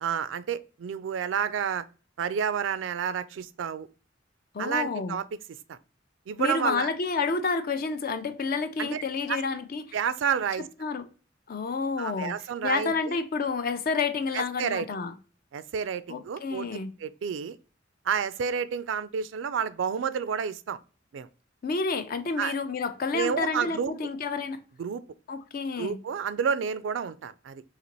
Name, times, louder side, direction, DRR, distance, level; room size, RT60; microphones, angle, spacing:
voice 1, 0.0-1.8 2.2-3.9 4.6-5.3 5.7-5.8 6.3-6.9 8.8-9.0 9.3-9.4 9.9-10.7 12.0-13.2 14.3-14.9 15.5-16.7 17.0-17.6 18.1-20.8 21.1-21.3 22.4-22.5 23.1-23.9 24.8-25.0 25.8-27.6, right 7 dB, 80° right, 0.3 m, -30 dB
voice 2, 4.5-5.2 6.4-10.0 10.8-11.1 11.5-12.3 12.6-15.1 16.1-16.9 21.6-24.6 25.3-26.0, left 4 dB, 50° left, 0.5 m, -29 dB
4.1 x 2.9 x 3.0 m
head